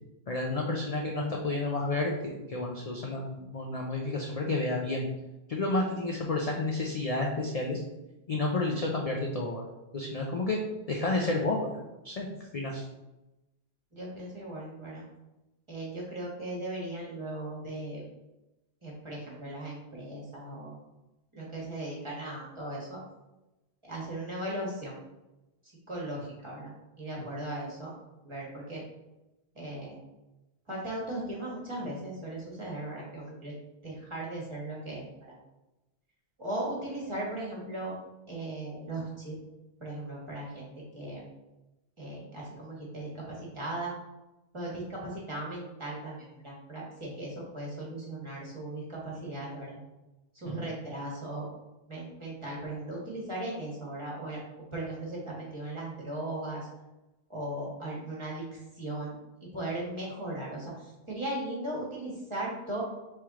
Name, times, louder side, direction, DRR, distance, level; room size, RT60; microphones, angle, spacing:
voice 1, 0.3-5.1 5.5-7.8 8.3-9.7 9.9-10.6 10.9-11.7 12.0-12.3 12.5-12.8 27.2-27.3, left 2 dB, 45° left, -1 dB, 0.5 m, -30 dB
voice 2, 13.9-15.0 15.7-18.0 18.8-20.8 21.3-23.0 23.8-25.0 25.9-27.9 28.2-28.8 29.5-30.0 30.7-33.5 33.8-35.1 36.4-37.9 38.3-39.3 39.8-41.2 42.0-43.9 44.5-49.8 50.3-51.5 51.9-54.4 54.7-56.7 57.3-59.1 59.4-62.8, right 1 dB, 25° right, -5 dB, 1.4 m, -37 dB
4.4 x 3.2 x 3.6 m, 0.99 s
omnidirectional pair, 1.1 m